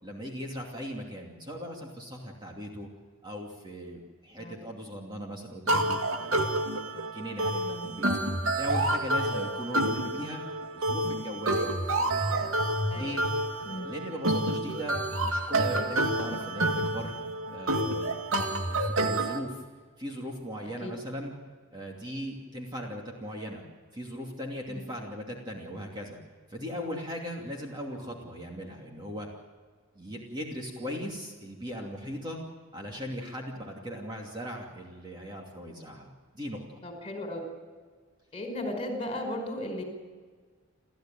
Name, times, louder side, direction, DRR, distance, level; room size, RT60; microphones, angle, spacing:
voice 1, 0.0-2.9 3.2-6.5 7.1-8.1 8.5-10.4 10.7-12.5 12.9-13.2 13.8-17.1 17.5-18.1 18.7-19.6 20.0-21.3 21.7-23.6 23.9-26.2 26.5-29.3 29.9-32.4 32.7-36.1 36.3-36.8, equal, 20° right, -1 dB, 2.7 m, -39 dB
sound 1, 5.7-19.4, right 1 dB, 80° right, 2.2 m, -29 dB
voice 2, 7.6-7.9 12.9-13.1 13.6-13.9 20.8-20.9 24.7-24.8 36.8-37.5 38.3-39.8, left 1 dB, 25° left, 4 dB, 5.1 m, -35 dB
30.0 x 14.0 x 9.1 m, 1.5 s
head